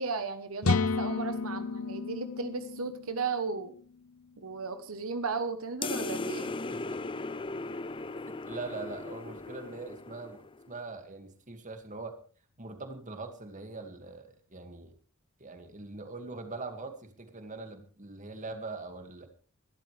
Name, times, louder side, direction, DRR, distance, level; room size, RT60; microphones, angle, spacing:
voice 1, 0.0-3.7 4.4-6.5, right 4 dB, 85° right, 9 dB, 1.1 m, -35 dB
sound 1, 0.6-4.4, left 4 dB, 80° left, 0.7 m, -32 dB
sound 2, 5.8-10.7, left 3 dB, 25° left, 0.5 m, -37 dB
voice 2, 8.3-10.4 10.7-12.1 12.6-14.9 15.4-19.3, right 3 dB, 35° right, 6 dB, 2.2 m, -42 dB
21.5 x 12.0 x 3.4 m, 0.40 s
head